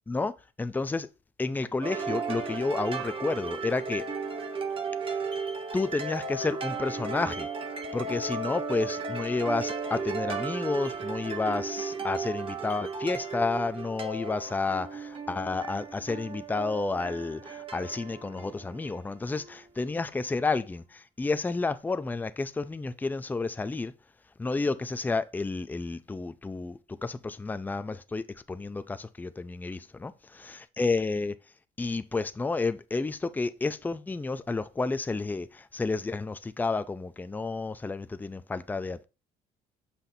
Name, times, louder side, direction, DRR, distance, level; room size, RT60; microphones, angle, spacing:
voice 1, 0.6-1.1 1.4-4.1 5.1-5.2 5.7-7.5 7.9-23.9 24.4-30.1 30.4-31.4 31.8-39.0, left 3 dB, 10° left, 0.4 m, -31 dB
sound 1, 1.8-19.7, right 4 dB, 30° right, 1.0 m, -35 dB
6.8 x 5.8 x 2.7 m
cardioid pair, 110°, 17 cm